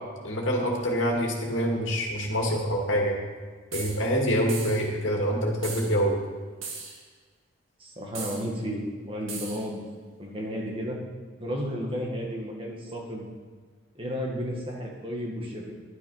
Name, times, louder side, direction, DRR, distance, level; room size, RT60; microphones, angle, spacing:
voice 1, 0.2-3.2 3.7-6.2, equal, 65° left, 0 dB, 2.2 m, -26 dB
sound 1, 3.7-4.0 4.5-4.9 5.6-5.9 6.6-7.0 8.1-8.4 9.3-9.6, right 4 dB, 80° right, 2.0 m, -37 dB
voice 2, 7.8-9.8 10.2-11.0 11.4-13.3 13.9-15.7, equal, 25° right, -1 dB, 1.8 m, -33 dB
11.5 x 8.7 x 5.5 m, 1.5 s
head